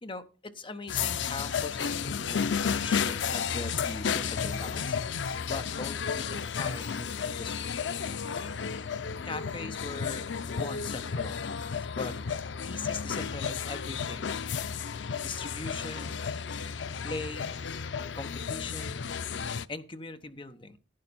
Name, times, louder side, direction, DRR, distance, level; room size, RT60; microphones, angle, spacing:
voice 1, 0.0-5.0 5.4-7.8 9.2-11.5 11.9-12.1 12.6-14.4 15.2-16.2 16.6-17.7 18.1-19.0 19.7-20.8, left 3 dB, 30° left, 9 dB, 0.9 m, -41 dB
sound 1, 0.9-19.6, left 6 dB, 90° left, 0.6 m, -32 dB
11.5 x 9.7 x 4.2 m, 0.35 s
head